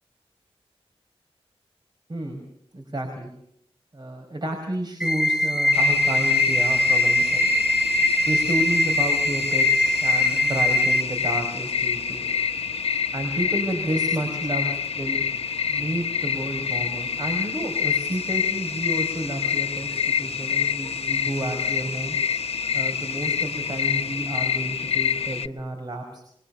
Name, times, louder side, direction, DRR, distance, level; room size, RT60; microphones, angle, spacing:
voice 1, 2.1-2.4 2.7-3.3 3.9-7.5 8.3-12.3 13.1-15.2 15.7-22.2 22.7-26.2, right 1 dB, 40° right, 2 dB, 5.1 m, -31 dB
sound 1, 5.0-11.0, left 1 dB, 5° right, 2.0 m, -22 dB
sound 2, 5.7-25.5, left 7 dB, 75° left, 1.0 m, -26 dB
23.5 x 23.5 x 7.2 m, 0.74 s
wide cardioid pair, 105°, 10 cm